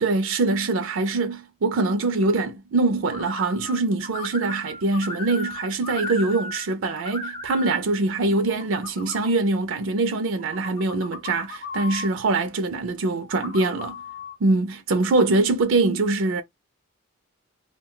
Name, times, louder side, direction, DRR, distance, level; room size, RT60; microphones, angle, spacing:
voice 1, 0.0-14.0 14.4-16.4, right 3 dB, 65° right, 0.4 m, -23 dB
sound 1, 3.1-3.8 4.0-6.7 6.9-7.8 8.3-9.3 10.3-12.1 13.2-14.4, left 2 dB, 25° left, 0.7 m, -36 dB
2.3 x 2.2 x 3.7 m
head